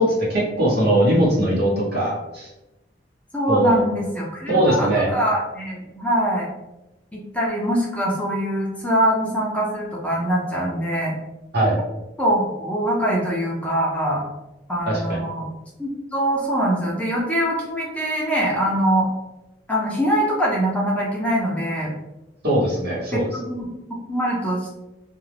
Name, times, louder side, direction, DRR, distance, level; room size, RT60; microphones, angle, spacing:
voice 1, 0.0-2.5 3.5-3.8 4.5-5.1 11.5-11.8 14.9-15.0 22.4-23.3, right 1 dB, 60° right, -5 dB, 1.0 m, -20 dB
voice 2, 3.3-6.5 7.1-11.1 12.2-14.2 14.7-15.5 15.8-19.1 19.7-21.9 23.1-23.7 24.1-24.7, equal, 5° left, -3 dB, 0.4 m, -23 dB
2.3 x 2.0 x 3.2 m, 0.97 s
head